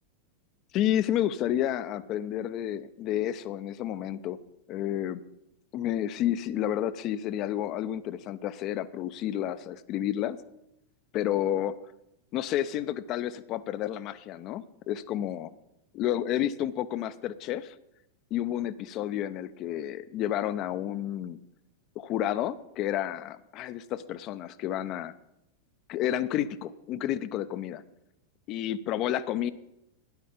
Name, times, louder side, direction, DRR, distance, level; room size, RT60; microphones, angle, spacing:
voice 1, 0.7-4.4 4.7-5.2 5.7-10.4 11.1-11.8 12.3-15.5 15.9-17.7 18.3-21.4 22.0-25.1 25.9-27.8 28.5-29.5, left 11 dB, 40° left, 15 dB, 0.6 m, -30 dB
12.5 x 10.0 x 5.0 m, 0.87 s
figure-of-eight pair, 90°, 0 cm